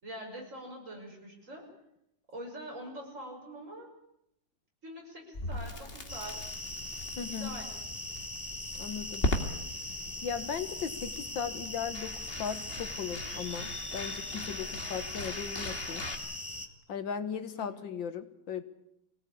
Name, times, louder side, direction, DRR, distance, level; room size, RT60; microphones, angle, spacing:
voice 1, 0.0-1.7 2.3-3.9 4.8-6.4 7.3-7.7 17.5-17.8, right 1 dB, 40° right, 0 dB, 6.5 m, -44 dB
Crackle, 5.3-16.2, left 1 dB, 30° left, 2.3 m, -39 dB
sound 1, 6.1-16.7, left 1 dB, 15° left, 1.4 m, -40 dB
voice 2, 7.2-7.6 8.8-9.3 10.2-16.1 16.9-18.6, left 7 dB, 85° left, 11 dB, 2.1 m, -37 dB
24.5 x 17.5 x 8.6 m, 0.80 s
omnidirectional pair, 2.0 m